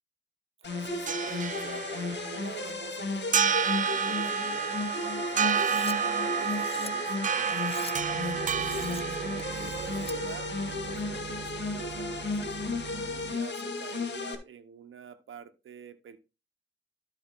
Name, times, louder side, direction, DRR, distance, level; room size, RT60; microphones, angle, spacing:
sound 1, 0.6-14.3, left 3 dB, 60° left, 2.2 m, -34 dB
voice 1, 0.6-7.6 8.2-12.7 13.1-16.2, right 8 dB, 80° right, 6 dB, 1.2 m, -46 dB
sound 2, 0.7-13.3, right 7 dB, 40° right, 0.4 m, -31 dB
Cutlery silverware, 5.5-6.0 6.4-6.9 7.5-7.9 8.5-9.0 9.4-10.2, left 4 dB, 30° left, 0.8 m, -43 dB
13.0 x 4.8 x 3.8 m, 0.28 s
cardioid pair, 80°, 21 cm